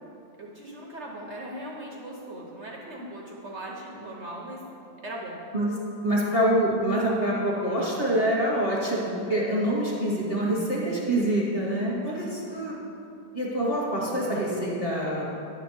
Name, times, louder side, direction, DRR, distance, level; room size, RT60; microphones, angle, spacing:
voice 1, 0.4-4.6 5.0-5.4, right 1 dB, 50° right, -2 dB, 1.0 m, -39 dB
voice 2, 6.0-12.7 13.3-15.2, right 1 dB, 30° left, -5 dB, 2.0 m, -26 dB
10.5 x 4.2 x 6.9 m, 2.7 s
omnidirectional pair, 2.0 m